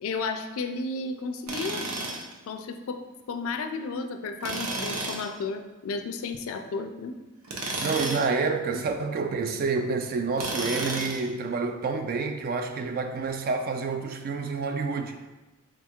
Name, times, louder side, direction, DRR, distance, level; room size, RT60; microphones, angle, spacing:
voice 1, 0.0-1.8 2.5-7.1 8.7-8.8, left 4 dB, 65° left, 7 dB, 0.4 m, -33 dB
Tools, 1.5-2.3 4.4-5.3 7.4-8.3 10.4-11.3, right 2 dB, 80° right, 0.7 m, -32 dB
voice 2, 7.8-15.3, right 4 dB, 45° right, 6 dB, 0.3 m, -28 dB
3.6 x 2.3 x 4.3 m, 1.1 s
head